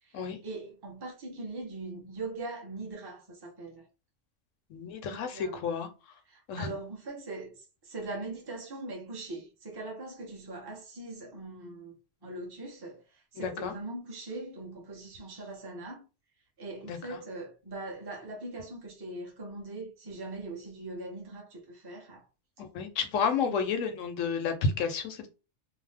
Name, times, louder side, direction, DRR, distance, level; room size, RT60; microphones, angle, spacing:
voice 1, 0.0-3.9 5.1-5.6 6.3-11.9 12.2-16.0 16.6-22.3 23.4-23.7, right 2 dB, 25° right, 0.7 m, -41 dB
voice 2, 4.7-5.9 6.5-6.7 13.4-13.7 16.9-17.2 22.6-25.3, left 5 dB, 90° left, 1.0 m, -31 dB
2.8 x 2.0 x 3.3 m
omnidirectional pair, 1.3 m